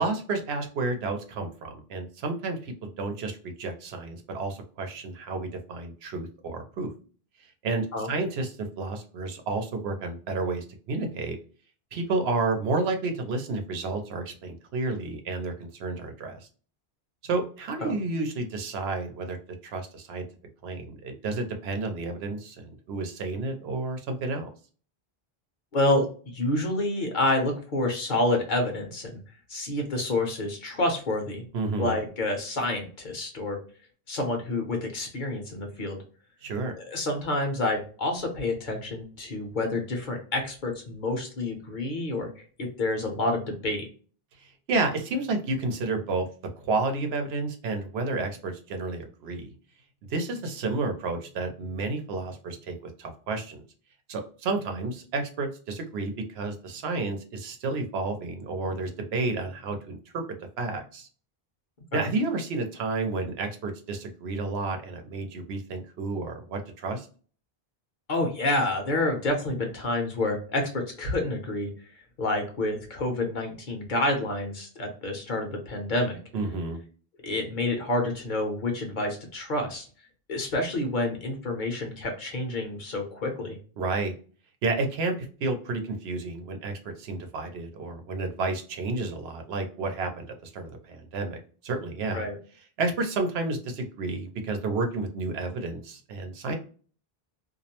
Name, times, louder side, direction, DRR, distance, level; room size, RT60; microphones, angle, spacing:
voice 1, 0.0-6.9 7.6-11.4 11.9-16.5 17.2-19.4 19.6-20.3 20.6-24.5 31.5-32.0 36.4-36.7 44.4-46.3 46.6-49.5 50.1-53.6 54.1-60.2 60.6-61.1 61.9-67.1 76.3-76.8 83.8-84.1 84.6-92.2 92.8-96.5, right 3 dB, 90° right, 5 dB, 0.9 m, -31 dB
voice 2, 25.7-29.2 29.5-31.4 31.8-33.6 34.1-36.0 36.7-43.9 61.9-62.1 68.1-71.7 72.2-76.2 77.2-79.8 80.3-83.6 92.1-92.4, left 2 dB, 55° left, 3 dB, 0.9 m, -28 dB
2.5 x 2.0 x 2.8 m, 0.40 s
omnidirectional pair, 1.0 m